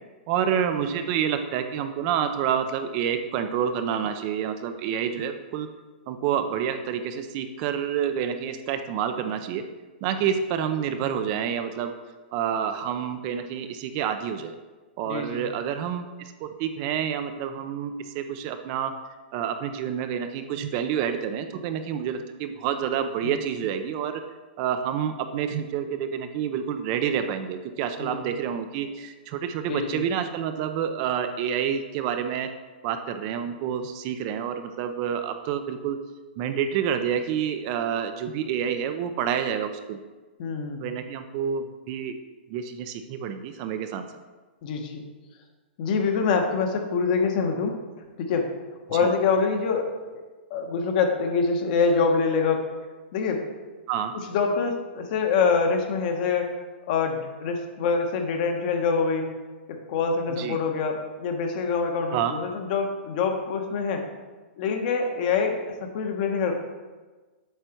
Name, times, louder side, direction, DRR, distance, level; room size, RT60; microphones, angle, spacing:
voice 1, 0.3-5.7 6.1-9.6 10.0-11.9 12.3-14.5 15.0-18.9 19.3-24.2 24.6-32.5 32.8-36.0 36.4-40.0 40.8-42.2 42.5-44.0 48.9-49.1 53.9-54.1 60.3-60.6 62.1-62.3, right 8 dB, 35° right, 8 dB, 0.6 m, -28 dB
voice 2, 15.0-15.4 23.2-23.4 28.0-28.2 29.7-30.0 40.4-40.8 44.6-45.0 45.8-47.8 48.2-48.5 48.9-49.9 50.1-50.2 50.5-52.7 53.1-53.4 54.3-56.5 56.9-59.3 59.7-64.0 64.6-66.5, left 5 dB, 45° left, 3 dB, 1.3 m, -25 dB
8.1 x 6.6 x 4.5 m, 1.3 s
hypercardioid pair, 145°, 6 cm